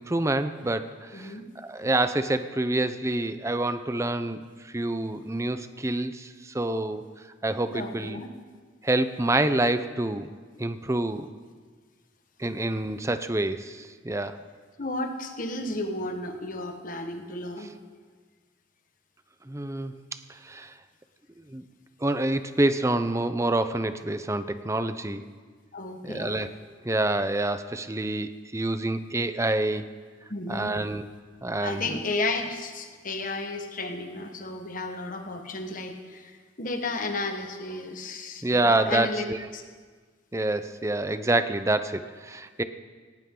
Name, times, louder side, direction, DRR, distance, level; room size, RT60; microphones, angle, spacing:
voice 1, 0.0-1.3 1.7-4.4 4.7-7.0 7.4-8.2 8.8-10.3 10.6-11.3 12.4-14.4 19.5-20.0 20.4-20.7 21.5-21.6 22.0-25.2 26.0-26.5 26.8-29.8 30.5-31.0 31.4-32.0 38.4-39.4 40.3-42.6, right 2 dB, 15° right, 10 dB, 0.6 m, -27 dB
voice 2, 1.1-1.4 7.7-8.3 14.8-17.7 25.7-26.4 30.3-30.8 31.6-39.3 39.5-39.6, left 2 dB, 45° left, 5 dB, 1.4 m, -33 dB
18.0 x 18.0 x 3.8 m, 1.5 s
head